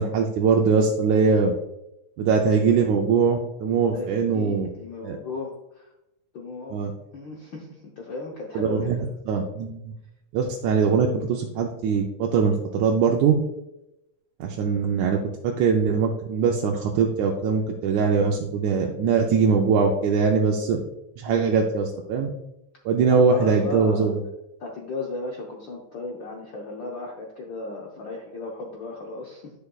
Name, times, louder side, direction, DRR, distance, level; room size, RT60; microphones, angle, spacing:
voice 1, 0.0-1.5 2.2-4.7 5.0-5.2 6.7-6.9 8.6-9.9 10.3-13.4 14.4-20.8 21.2-22.3 22.9-24.2, right 5 dB, 80° right, 1 dB, 2.0 m, -22 dB
voice 2, 3.9-5.9 6.3-6.9 7.1-8.9 21.3-21.5 23.1-24.1 24.6-29.5, left 3 dB, 85° left, -1 dB, 1.0 m, -35 dB
10.5 x 6.8 x 2.3 m, 0.90 s
omnidirectional pair, 3.4 m